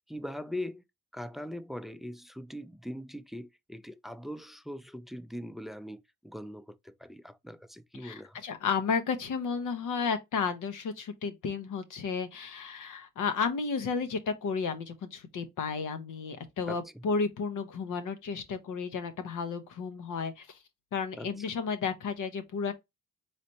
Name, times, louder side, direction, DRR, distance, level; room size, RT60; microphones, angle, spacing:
voice 1, 0.1-0.8 1.1-8.4 16.7-16.8 21.2-21.4, left 1 dB, ahead, 0.3 m, -41 dB
voice 2, 7.9-20.6 20.9-22.7, left 5 dB, 80° left, 0.7 m, -33 dB
4.1 x 3.3 x 2.7 m
cardioid pair, 60°, 31 cm